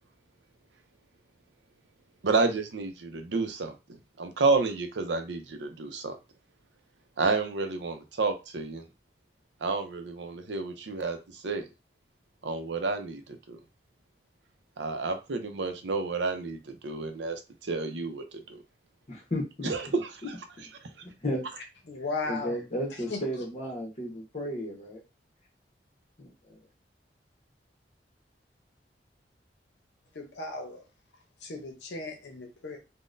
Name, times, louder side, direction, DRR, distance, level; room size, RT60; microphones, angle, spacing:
voice 1, 2.2-6.2 7.2-8.8 9.6-11.7 12.4-13.6 14.8-18.6 19.6-19.8, right 3 dB, 90° right, 7 dB, 0.6 m, -30 dB
voice 2, 19.1-19.7 21.2-21.4 22.2-25.0 26.2-26.6, equal, 40° left, -1 dB, 1.0 m, -33 dB
voice 3, 21.9-22.6 23.1-23.2 30.1-30.8 31.4-32.8, left 3 dB, 80° left, 2 dB, 0.7 m, -36 dB
3.8 x 2.1 x 2.5 m, 0.28 s
head